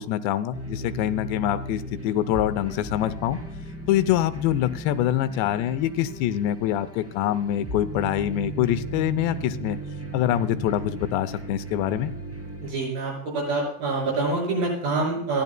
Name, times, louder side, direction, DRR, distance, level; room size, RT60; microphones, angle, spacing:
voice 1, 0.0-3.4 3.9-9.8 10.1-12.1, left 12 dB, 85° left, 12 dB, 2.9 m, -25 dB
sound 1, 0.5-12.7, right 2 dB, 5° right, 1.9 m, -36 dB
voice 2, 12.6-15.4, right 3 dB, 60° right, -2 dB, 7.8 m, -26 dB
28.5 x 11.5 x 2.2 m, 0.69 s
omnidirectional pair, 5.0 m